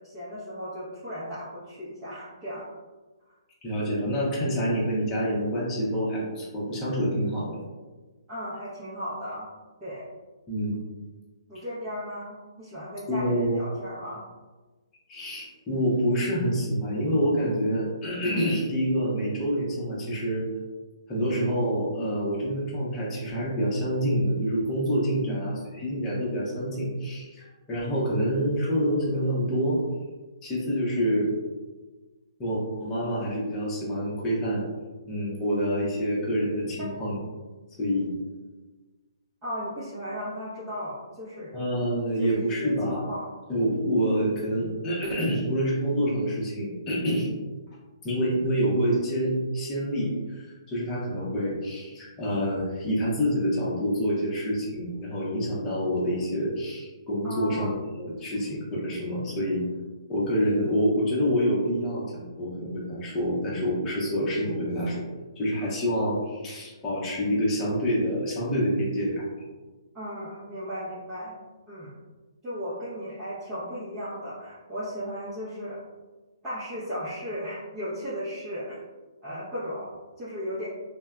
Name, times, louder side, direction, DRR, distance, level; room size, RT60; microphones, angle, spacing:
voice 1, 0.0-2.7 8.3-9.5 9.8-10.0 11.5-14.2 25.2-25.6 39.4-41.6 42.2-42.7 43.1-43.3 57.2-57.8 69.9-71.9 72.4-75.8 76.4-78.8 79.2-80.7, equal, 20° right, -13 dB, 0.8 m, -36 dB
voice 2, 3.6-7.6 10.5-10.8 13.1-13.6 15.1-20.5 21.1-29.8 30.4-31.3 32.4-34.6 35.1-37.2 37.8-38.1 41.5-43.1 43.5-47.3 48.0-59.6 60.1-65.0 65.4-69.2, equal, 15° left, -6 dB, 0.8 m, -27 dB
3.3 x 2.1 x 2.2 m, 1.3 s
hypercardioid pair, 140°, 3 cm